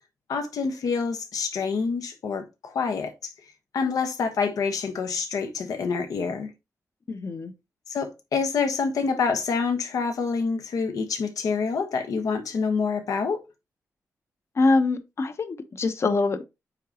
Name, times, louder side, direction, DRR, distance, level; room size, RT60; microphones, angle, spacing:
voice 1, 0.3-3.3 3.7-6.5 7.9-13.4, left 5 dB, 85° left, 1.3 m, -27 dB
voice 2, 7.1-7.5 14.6-16.4, left 3 dB, 50° left, 0.9 m, -24 dB
8.9 x 3.8 x 2.9 m
wide cardioid pair, 105°, 6 cm